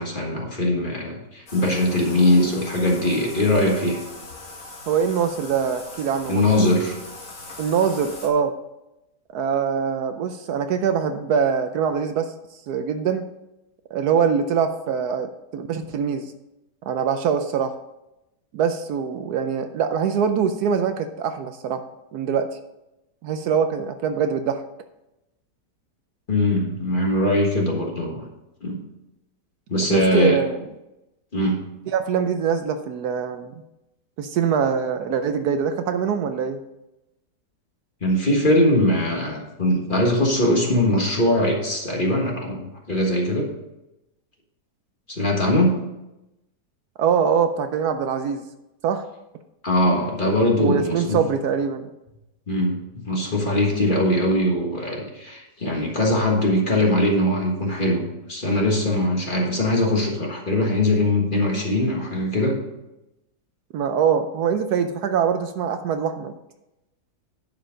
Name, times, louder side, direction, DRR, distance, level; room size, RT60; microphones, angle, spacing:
voice 1, 0.0-4.0 6.3-7.0 26.3-28.2 28.6-28.8 29.7-30.4 31.3-31.6 38.0-43.5 45.1-45.8 49.6-51.2 52.5-52.8 53.0-62.6, left 1 dB, 30° left, -1 dB, 1.6 m, -21 dB
Bathtub (filling or washing), 1.5-8.3, left 2 dB, 55° left, 1.9 m, -40 dB
voice 2, 4.9-6.7 7.6-8.5 9.3-12.3 12.7-13.3 13.9-16.3 16.8-17.7 18.5-21.8 22.1-22.6 23.2-24.6 29.9-30.6 31.9-33.5 34.2-36.6 47.0-48.4 48.8-49.0 50.6-51.9 63.7-66.3, right 7 dB, 70° right, 8 dB, 1.1 m, -23 dB
10.5 x 4.9 x 5.1 m, 0.93 s
omnidirectional pair, 1.8 m